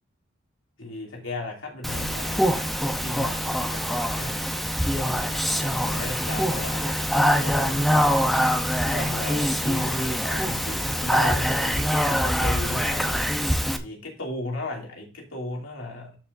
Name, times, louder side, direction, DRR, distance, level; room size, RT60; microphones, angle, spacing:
voice 1, 0.8-2.5 3.0-4.4 5.0-8.3 8.9-13.2 13.8-16.2, left 2 dB, 85° left, 0 dB, 2.8 m, -36 dB
Speech, 1.8-13.8, equal, ahead, 0.8 m, -24 dB
13.5 x 5.8 x 2.7 m, 0.32 s
head